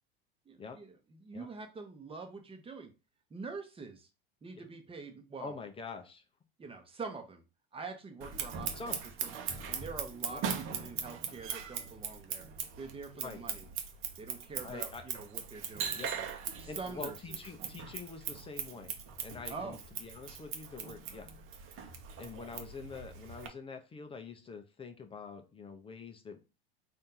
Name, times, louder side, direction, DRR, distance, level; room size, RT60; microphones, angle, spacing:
voice 1, 0.5-2.9 3.3-4.1 4.4-5.5 6.6-7.4 7.7-8.9 9.2-9.3 9.7-12.5 12.8-13.7 14.2-16.3 16.6-17.4 19.5-19.8, right 4 dB, 20° right, 5 dB, 1.1 m, -45 dB
voice 2, 5.4-6.2 8.8-9.0 10.3-10.4 13.1-13.4 14.6-15.0 15.9-16.1 16.7-19.0 19.2-21.3 22.2-26.4, left 4 dB, 20° left, 5 dB, 0.7 m, -45 dB
Scissors, 8.2-23.5, right 7 dB, 45° right, 1.0 m, -40 dB
4.3 x 2.8 x 3.8 m, 0.29 s
hypercardioid pair, 95°, 29 cm